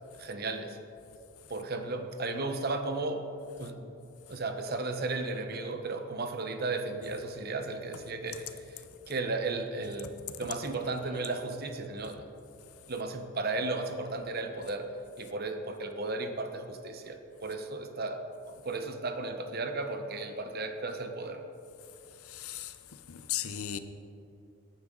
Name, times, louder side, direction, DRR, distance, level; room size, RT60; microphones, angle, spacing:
voice 1, 0.2-0.8 1.5-3.3 3.6-3.9 4.3-12.2 12.9-18.2 18.6-21.4, right 3 dB, 45° right, 0.9 m, -35 dB
voice 2, 22.3-22.7 23.1-23.8, left 10 dB, 75° left, 0.7 m, -36 dB
18.5 x 9.5 x 3.8 m
head